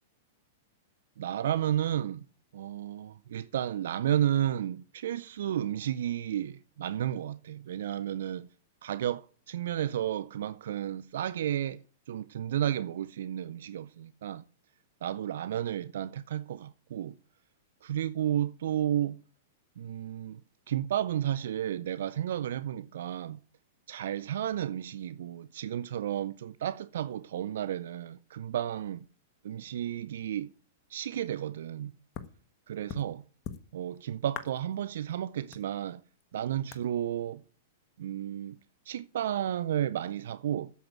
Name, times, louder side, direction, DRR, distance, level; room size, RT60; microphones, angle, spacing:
voice 1, 1.2-2.3 2.5-8.5 8.8-11.8 12.1-14.4 15.0-17.1 17.8-19.2 19.8-20.4 20.7-23.4 23.9-29.1 29.4-30.5 30.9-31.9 32.7-33.2 33.7-36.0 36.3-37.4 38.0-38.6 38.9-40.7, right 11 dB, 65° right, 0.4 m, -32 dB
sound 1, 32.1-32.3 32.9-33.0 33.4-34.0 34.3-34.8 35.1-35.2 35.5-36.3 36.7-36.9, left 9 dB, 35° left, 1.3 m, -41 dB
8.1 x 7.8 x 8.9 m
hypercardioid pair, 110°, 0 cm